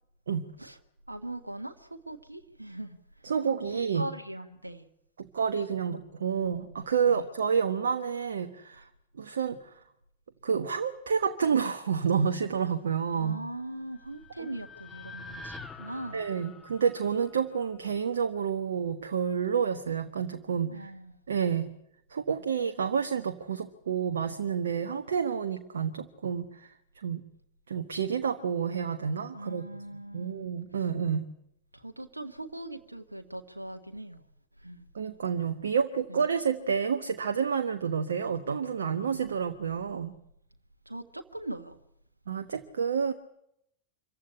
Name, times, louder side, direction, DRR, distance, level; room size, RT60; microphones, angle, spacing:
voice 1, 1.1-3.0 3.9-4.9 7.0-7.2 13.1-16.2 20.6-21.1 29.3-30.4 31.7-34.2 34.6-34.8 36.1-36.2 40.8-41.8, right 1 dB, 85° right, 1.4 m, -40 dB
voice 2, 3.2-4.1 5.2-8.9 9.1-9.8 10.4-13.3 14.4-14.5 16.1-20.9 21.3-21.7 22.1-27.2 27.7-29.6 30.1-31.2 34.9-40.1 42.3-43.1, right 6 dB, 65° right, 1.3 m, -29 dB
sound 1, 13.7-18.0, left 3 dB, 15° left, 1.6 m, -47 dB
26.0 x 15.5 x 9.9 m
figure-of-eight pair, 90°, 0 cm